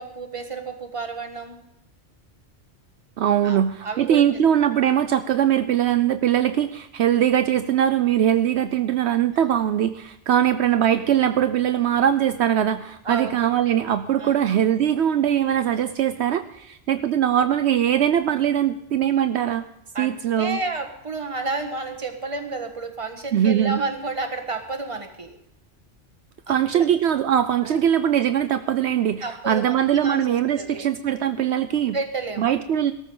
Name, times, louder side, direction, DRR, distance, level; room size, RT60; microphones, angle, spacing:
voice 1, 0.0-1.6 3.4-4.2 9.3-9.5 13.0-13.4 14.2-14.4 19.9-25.4 26.5-26.9 27.6-27.8 29.2-30.9 31.9-32.6, right 3 dB, 30° right, 6 dB, 1.5 m, -31 dB
voice 2, 3.2-19.6 20.0-20.6 23.3-23.8 26.5-32.0 32.4-32.9, right 10 dB, 75° right, 10 dB, 0.9 m, -21 dB
18.0 x 13.5 x 3.8 m, 0.81 s
omnidirectional pair, 1.2 m